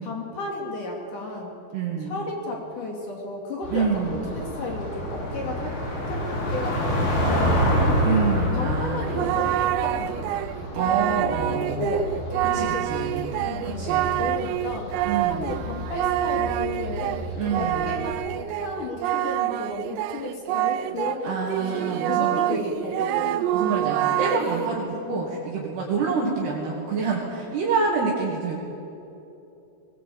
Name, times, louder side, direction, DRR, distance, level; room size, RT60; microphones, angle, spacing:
voice 1, 0.0-1.5 2.0-4.0 4.3-5.8 6.1-7.8 8.5-10.3 11.5-12.1 12.6-14.9 15.3-17.2 17.6-23.4 24.9-25.3, left 2 dB, 45° left, 0 dB, 3.6 m, -33 dB
voice 2, 1.7-2.2 3.7-4.3 8.0-9.3 10.7-11.9 12.4-13.2 13.6-14.1 15.0-15.6 17.4-17.9 21.2-22.4 23.5-28.6, right 5 dB, 60° right, -3 dB, 4.1 m, -27 dB
sound 1, 3.6-18.1, equal, 65° left, 6.7 m, -29 dB
Singing, 8.1-21.2 21.5-24.7, right 13 dB, 90° right, 2.4 m, -27 dB
21.0 x 20.0 x 8.7 m, 2.9 s
omnidirectional pair, 5.7 m